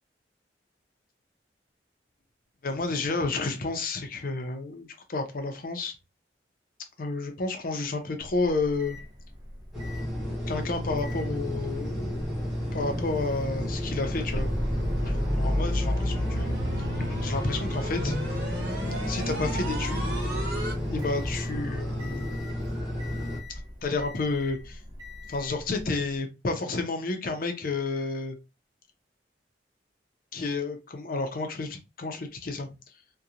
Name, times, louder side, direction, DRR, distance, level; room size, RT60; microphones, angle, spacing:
voice 1, 2.6-5.9 7.0-9.0 10.5-12.2 12.7-14.5 15.0-16.1 16.8-16.9 17.2-18.2 19.1-20.1 20.9-22.4 23.8-24.8 25.3-28.4 30.3-32.7, left 3 dB, 50° left, 0.6 m, -31 dB
Microwave oven, 8.2-26.2, left 1 dB, 25° right, 0.7 m, -38 dB
sound 1, 9.7-23.4, equal, 5° right, 0.9 m, -33 dB
sound 2, 14.3-20.7, equal, 70° right, 1.2 m, -31 dB
2.8 x 2.2 x 2.3 m
head